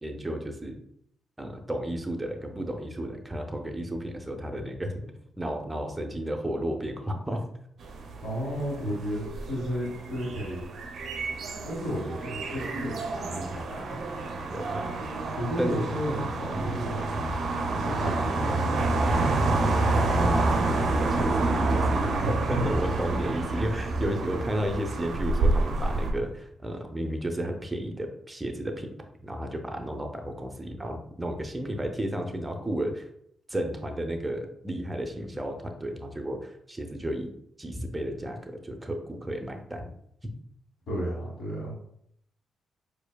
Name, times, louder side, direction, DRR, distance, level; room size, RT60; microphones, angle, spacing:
voice 1, 0.0-0.8 1.4-5.1 5.4-7.4 14.5-15.0 15.6-15.8 19.8-22.1 22.5-28.9 29.2-33.1 33.5-37.3 37.6-39.9 40.2-40.3, right 1 dB, 15° right, 4 dB, 0.6 m, -33 dB
sound 1, 7.8-26.1, right 2 dB, 65° right, 0.5 m, -28 dB
voice 2, 8.2-10.7 11.6-13.8 15.3-17.0 17.6-19.5 40.9-41.7, equal, 70° left, -6 dB, 1.4 m, -33 dB
4.3 x 2.6 x 2.2 m, 0.71 s
supercardioid pair, 55°, 0 cm